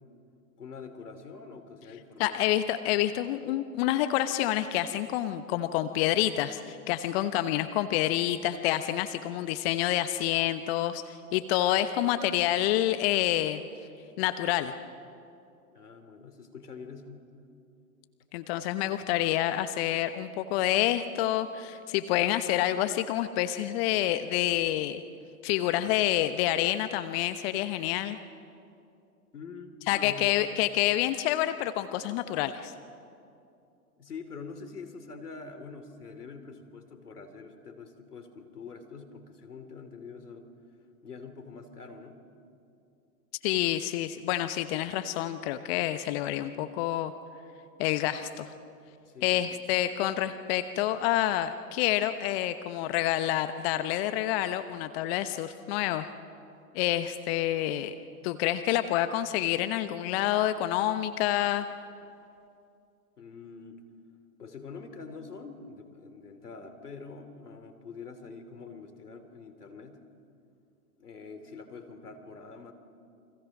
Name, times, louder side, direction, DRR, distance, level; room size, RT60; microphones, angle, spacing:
voice 1, 0.6-2.4 15.6-17.3 29.3-30.4 34.0-40.5 41.0-42.2 49.0-49.5 63.2-63.8 64.4-70.0 71.0-72.7, left 4 dB, 85° left, 9 dB, 3.0 m, -45 dB
voice 2, 2.2-13.6 14.2-14.7 18.3-25.0 25.4-28.2 29.9-32.7 43.4-47.1 47.8-48.5 49.2-56.1 56.7-57.9 58.2-61.7, left 13 dB, 40° left, 10 dB, 1.1 m, -28 dB
29.5 x 25.0 x 6.1 m, 2.5 s
hypercardioid pair, 110°, 45 cm